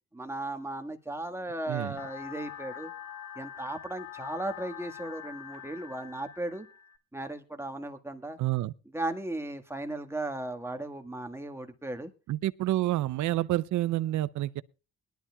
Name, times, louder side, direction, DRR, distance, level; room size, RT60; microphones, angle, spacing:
voice 1, 0.1-2.9 3.3-6.7 7.1-8.4 8.9-12.1, right 2 dB, 10° right, 1.6 m, -36 dB
sound 1, 2.0-7.0, left 10 dB, 60° left, 1.9 m, -44 dB
voice 2, 8.4-8.7 12.3-14.6, right 15 dB, 75° right, 0.6 m, -28 dB
21.0 x 11.5 x 2.3 m
cardioid pair, 90°, 30 cm